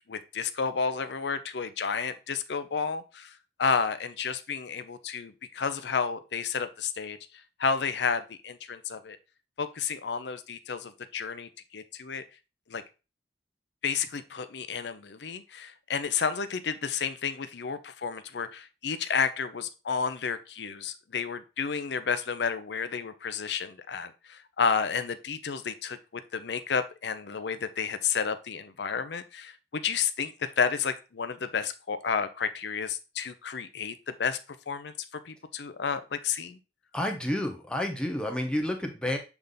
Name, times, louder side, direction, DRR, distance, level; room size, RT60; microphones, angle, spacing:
voice 1, 0.1-7.2 7.6-9.2 9.6-12.2 12.7-12.8 13.8-26.0 26.3-34.4 34.7-34.9 35.2-36.6, left 6 dB, 70° left, 11 dB, 0.6 m, -31 dB
voice 2, 36.9-39.2, left 1 dB, 5° left, 3 dB, 0.9 m, -30 dB
7.0 x 3.4 x 3.9 m, 0.30 s
head